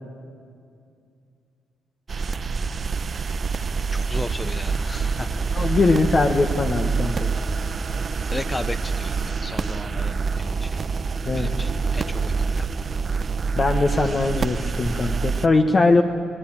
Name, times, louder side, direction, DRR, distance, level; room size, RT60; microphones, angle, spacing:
sound 1, 2.1-15.5, right 5 dB, 40° right, 0.8 m, -26 dB
voice 1, 3.9-5.8 8.3-10.8 11.3-12.7 14.0-14.3, left 2 dB, 15° left, 10 dB, 0.7 m, -35 dB
voice 2, 5.5-7.3 11.2-11.5 13.5-16.0, left 3 dB, 35° left, 4 dB, 1.5 m, -20 dB
23.5 x 19.0 x 8.9 m, 2.3 s
cardioid pair, 90°, 0 cm